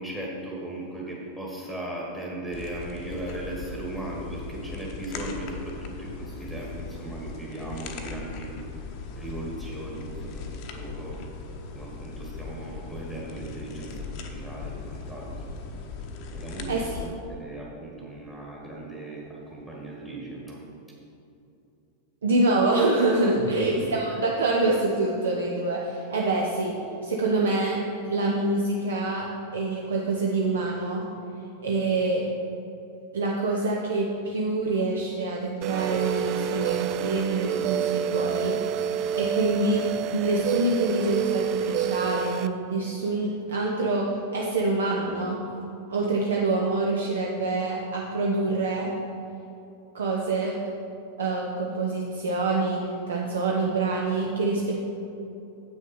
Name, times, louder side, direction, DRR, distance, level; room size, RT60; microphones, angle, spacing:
voice 1, 0.0-8.5 9.1-11.2 11.7-15.5 16.3-20.6 23.4-23.9, right 2 dB, 10° right, -4 dB, 1.7 m, -37 dB
sound 1, 2.5-17.1, left 4 dB, 45° left, 0.8 m, -38 dB
voice 2, 22.2-26.7 27.0-27.8 28.0-29.3 29.5-31.0 31.6-32.3 33.1-38.6 38.9-39.8 40.1-45.4 45.9-48.9 49.9-50.6 51.2-54.8, right 2 dB, 65° right, -1 dB, 0.8 m, -26 dB
sound 2, 35.6-42.5, right 9 dB, 40° right, 0.3 m, -28 dB
8.0 x 6.3 x 5.3 m, 2.7 s
figure-of-eight pair, 90°, 0 cm